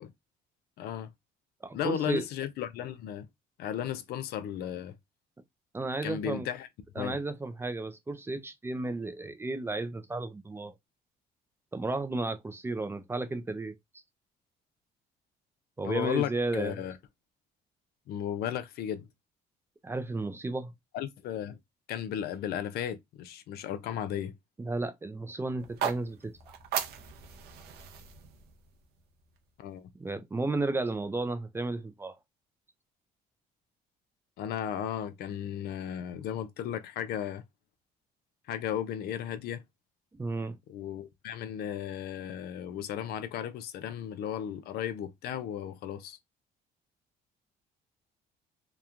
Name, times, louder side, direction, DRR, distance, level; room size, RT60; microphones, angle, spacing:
voice 1, 0.8-1.1 1.7-3.3 3.6-4.9 6.0-6.7 7.0-7.2 15.8-17.0 18.1-19.1 20.9-21.6 21.9-24.3 29.6-29.9 34.4-37.4 38.5-39.6 40.7-46.2, left 10 dB, 70° left, 0.4 m, -35 dB
voice 2, 1.6-2.2 5.7-6.5 7.0-10.7 11.7-13.7 15.8-16.8 19.8-20.7 24.6-26.3 30.0-32.2 40.2-40.6, right 2 dB, 15° right, 0.4 m, -33 dB
sound 1, 25.6-29.7, right 8 dB, 70° right, 0.6 m, -38 dB
2.9 x 2.2 x 2.4 m
cardioid pair, 110°, 17 cm